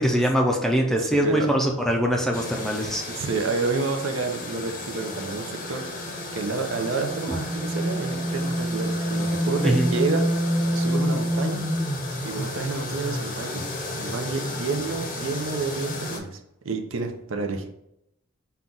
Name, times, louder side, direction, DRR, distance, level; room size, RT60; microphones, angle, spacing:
voice 1, 0.0-3.0 7.3-7.4 9.6-9.9, equal, ahead, 1 dB, 0.4 m, -23 dB
voice 2, 1.0-1.5 3.1-5.9 6.3-10.2 10.7-11.6 12.2-16.4 16.6-17.7, right 4 dB, 65° right, 5 dB, 0.6 m, -29 dB
sound 1, 2.3-16.2, equal, 40° left, 0.7 m, -29 dB
5.6 x 2.3 x 3.7 m, 0.80 s
head